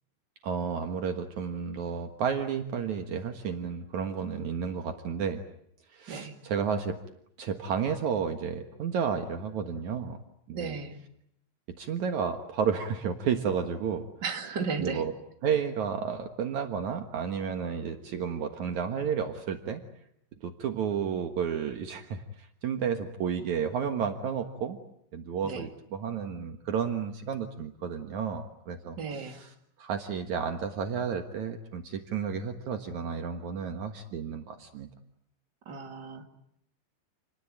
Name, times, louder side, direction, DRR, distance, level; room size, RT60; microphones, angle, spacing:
voice 1, 0.4-5.4 5.9-7.0 7.4-10.2 10.5-10.7 11.8-14.1 14.8-15.1 15.4-19.8 20.4-24.8 25.1-34.9, right 7 dB, 85° right, 6 dB, 1.6 m, -32 dB
voice 2, 10.5-11.0 14.2-15.0 25.4-25.7 28.9-29.4 35.7-36.3, right 5 dB, 35° right, 5 dB, 1.9 m, -34 dB
29.0 x 20.5 x 9.1 m, 0.75 s
omnidirectional pair, 5.8 m